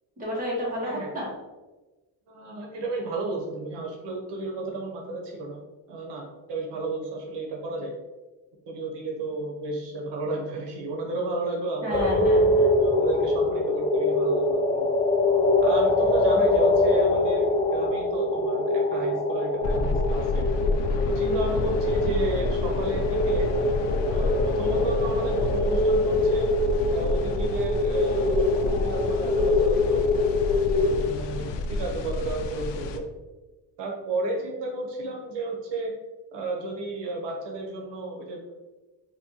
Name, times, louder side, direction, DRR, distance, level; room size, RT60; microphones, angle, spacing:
voice 1, 0.2-1.3 11.8-12.7, equal, 20° right, -5 dB, 1.4 m, -31 dB
voice 2, 2.3-5.6 5.9-7.9 8.7-12.3 12.8-14.9 15.6-20.5 21.1-23.5 24.1-26.5 26.9-30.2 30.7-33.0 33.8-35.9 36.3-38.5, right 2 dB, 80° right, 0 dB, 0.8 m, -33 dB
sound 1, 11.9-31.1, left 2 dB, 15° left, 0.3 m, -24 dB
sound 2, 19.6-33.0, left 3 dB, 85° left, 0.5 m, -29 dB
4.2 x 2.7 x 2.8 m, 1.2 s
cardioid pair, 130°, 41 cm